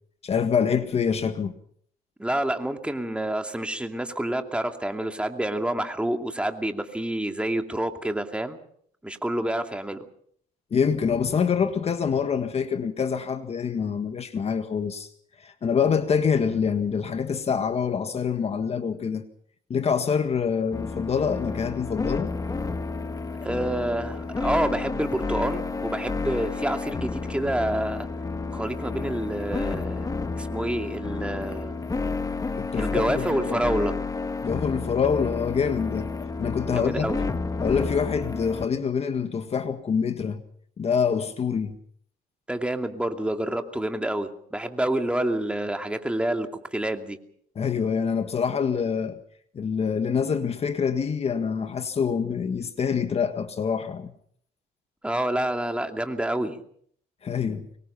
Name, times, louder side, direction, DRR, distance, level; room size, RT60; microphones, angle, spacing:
voice 1, 0.2-1.5 10.7-15.1 15.4-19.2 19.7-22.3 32.6-33.6 34.4-36.1 36.4-37.1 37.6-40.4 40.8-41.8 47.5-49.2 49.5-54.1 57.2-57.7, left 6 dB, 40° left, 1.7 m, -25 dB
voice 2, 2.2-8.6 9.0-10.0 23.4-28.1 28.5-31.8 32.7-34.0 36.7-37.2 42.5-47.2 55.0-56.6, right 1 dB, 5° right, 2.6 m, -28 dB
sound 1, 20.7-38.7, left 4 dB, 20° left, 1.5 m, -31 dB
25.0 x 22.5 x 5.8 m
cardioid pair, 110°, 17 cm